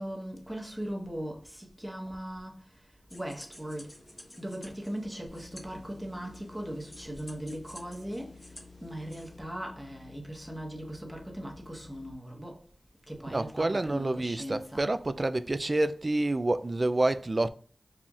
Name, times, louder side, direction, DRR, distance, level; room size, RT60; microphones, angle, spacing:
voice 1, 0.0-2.6 3.1-3.9 4.4-8.4 8.8-12.7 13.1-14.9, equal, 10° right, 1.0 m, -39 dB
sound 1, 3.1-9.4, left 1 dB, 40° left, 0.9 m, -52 dB
sound 2, 5.3-12.1, left 4 dB, 65° left, 0.4 m, -53 dB
voice 2, 13.3-17.5, right 2 dB, 45° right, 0.3 m, -28 dB
5.6 x 2.4 x 2.4 m
cardioid pair, 40°, 0 cm